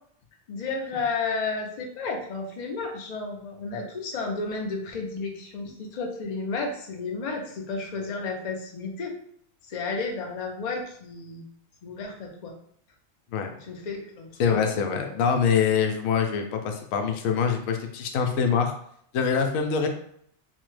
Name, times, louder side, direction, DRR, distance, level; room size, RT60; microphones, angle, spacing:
voice 1, 0.5-9.1 9.7-11.4 11.8-12.5 13.6-14.5, left 4 dB, 50° left, 1 dB, 0.5 m, -32 dB
voice 2, 14.4-18.7 19.1-19.9, left 6 dB, 90° left, 5 dB, 1.0 m, -24 dB
3.1 x 2.2 x 3.1 m, 0.66 s
omnidirectional pair, 1.4 m